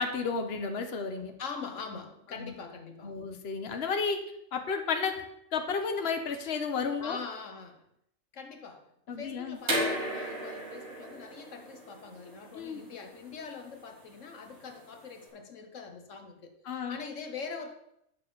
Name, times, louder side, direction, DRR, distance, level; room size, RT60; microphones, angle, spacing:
voice 1, 0.0-1.3 2.4-2.5 3.0-4.2 4.5-5.1 5.5-7.2 9.1-9.6 12.5-12.8 16.7-17.0, left 5 dB, 55° left, 5 dB, 1.3 m, -32 dB
voice 2, 1.4-3.2 7.0-7.9 8.3-17.7, left 5 dB, 75° left, 5 dB, 1.4 m, -43 dB
sound 1, 9.6-15.2, equal, 55° right, 4.1 m, -36 dB
10.5 x 6.9 x 5.4 m, 0.76 s
omnidirectional pair, 1.3 m